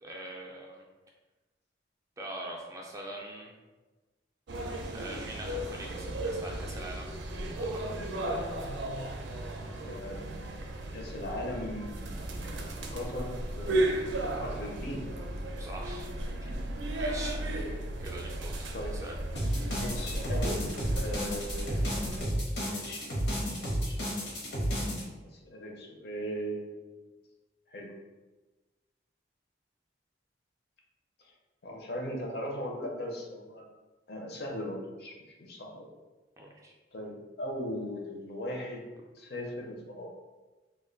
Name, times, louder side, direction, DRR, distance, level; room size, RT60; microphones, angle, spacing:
voice 1, 0.0-0.8 2.2-3.5 4.9-7.1 7.5-8.1 15.6-16.1 16.4-16.5 16.9-18.7 19.0-19.2 36.4-36.7, right 1 dB, 15° right, -2 dB, 0.3 m, -43 dB
sound 1, 4.5-22.2, right 1 dB, 80° right, 0.4 m, -35 dB
voice 2, 9.8-10.6 10.9-12.6 12.9-14.0 14.4-15.0 18.7-18.9 19.7-22.0 22.6-24.4 25.2-27.0 27.7-27.9 31.2-31.3 31.6-33.7 34.1-35.9 36.9-38.8 39.1-40.1, equal, 60° left, 0 dB, 0.5 m, -39 dB
sound 2, 19.4-25.0, equal, 85° left, 0.8 m, -32 dB
2.5 x 2.1 x 3.8 m, 1.2 s
head